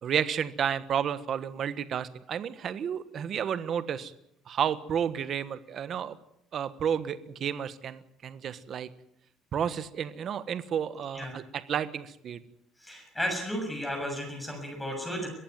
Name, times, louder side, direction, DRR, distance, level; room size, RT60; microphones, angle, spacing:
voice 1, 0.0-4.1 4.5-6.2 6.5-8.9 9.5-12.4, right 8 dB, 40° right, 13 dB, 1.3 m, -31 dB
voice 2, 12.8-15.3, equal, 5° left, 2 dB, 7.0 m, -33 dB
23.0 x 15.0 x 9.5 m, 0.75 s
cardioid pair, 155°, 0 cm